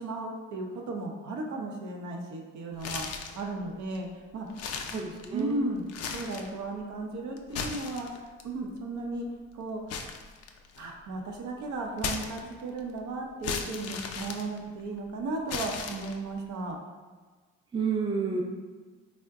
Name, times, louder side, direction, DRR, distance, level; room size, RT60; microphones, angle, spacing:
voice 1, 0.0-3.1 3.4-4.1 4.3-4.5 5.3-5.8 6.1-8.1 8.4-9.3 9.5-9.8 10.8-16.8 18.3-18.4, right 2 dB, 70° right, 1 dB, 0.7 m, -35 dB
sound 1, 2.8-3.5 4.0-4.1 4.5-5.5 5.9-6.6 7.4-8.4 9.9-10.9 12.0-12.8 13.4-15.0 15.5-16.4, left 5 dB, 55° left, 0.4 m, -36 dB
voice 2, 4.9-5.8 17.7-18.4, right 5 dB, 15° right, 1 dB, 0.4 m, -30 dB
3.6 x 2.1 x 3.4 m, 1.4 s
cardioid pair, 90°, 30 cm